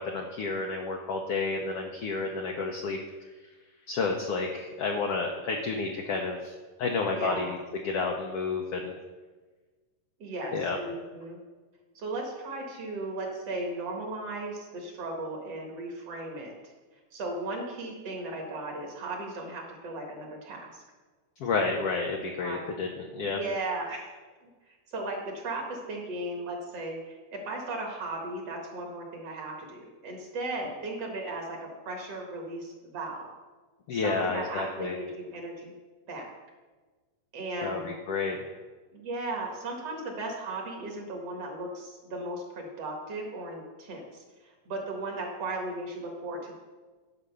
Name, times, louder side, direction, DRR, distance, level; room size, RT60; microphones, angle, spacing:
voice 1, 0.0-3.0 3.9-6.5 6.8-7.6 7.8-8.9 10.5-10.8 21.4-23.4 33.9-34.9 37.6-38.5, left 4 dB, 75° left, 2 dB, 1.4 m, -30 dB
voice 2, 7.1-7.5 10.2-11.4 11.9-16.7 17.1-20.8 22.4-22.7 23.2-24.1 24.4-33.3 33.9-35.8 36.1-36.4 37.3-37.9 38.9-46.5, right 2 dB, 55° right, 1 dB, 2.3 m, -36 dB
11.5 x 5.1 x 6.8 m, 1.3 s
omnidirectional pair, 3.7 m